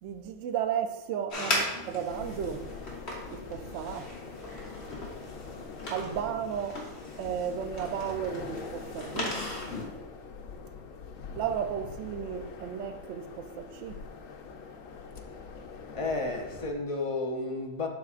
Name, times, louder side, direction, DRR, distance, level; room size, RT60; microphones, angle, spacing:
voice 1, 0.0-2.7 3.3-4.1 5.9-6.8 7.2-9.4 11.3-14.0, right 8 dB, 70° right, 0.8 m, -34 dB
sound 1, 1.3-9.9, left 1 dB, 55° left, 1.6 m, -37 dB
sound 2, 2.1-16.7, left 5 dB, 80° left, 1.0 m, -44 dB
voice 2, 15.9-17.9, left 3 dB, 35° left, 0.5 m, -32 dB
11.5 x 4.1 x 2.4 m
omnidirectional pair, 1.4 m